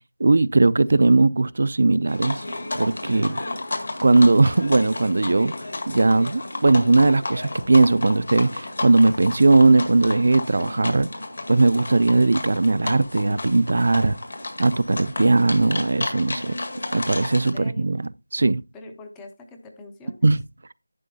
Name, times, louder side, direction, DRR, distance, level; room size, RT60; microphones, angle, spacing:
voice 1, 0.2-2.4 2.8-3.4 4.0-5.5 5.9-11.1 11.5-14.2 14.6-16.6 16.9-18.0 18.3-18.6 20.2-20.4, right 3 dB, 45° right, 0.4 m, -18 dB
sound 1, 2.1-17.5, left 2 dB, 50° left, 1.9 m, -32 dB
voice 2, 3.1-3.6 17.3-17.9 18.7-20.2, left 2 dB, 5° left, 0.5 m, -44 dB
11.0 x 8.3 x 2.7 m
figure-of-eight pair, 175°, 0 cm